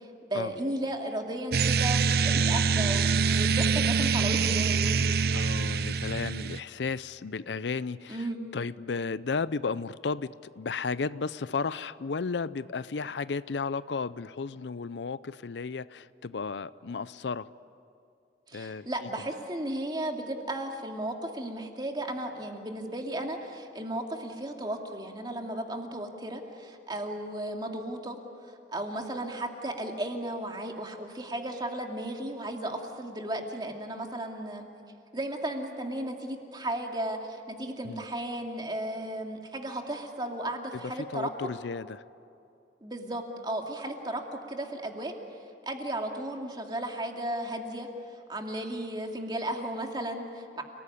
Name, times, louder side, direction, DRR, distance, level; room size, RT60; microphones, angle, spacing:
voice 1, 0.0-5.0 8.1-8.4 18.5-28.2 28.5-34.7 35.1-41.5 42.8-45.1 45.7-47.9 48.3-50.6, right 1 dB, 25° right, 2.5 m, -35 dB
sound 1, 1.5-6.6, right 5 dB, 60° right, 0.6 m, -25 dB
voice 2, 5.3-8.3 8.5-17.5 18.5-19.1 37.8-38.0 40.8-42.0, left 4 dB, 75° left, 0.5 m, -34 dB
29.5 x 20.0 x 10.0 m
head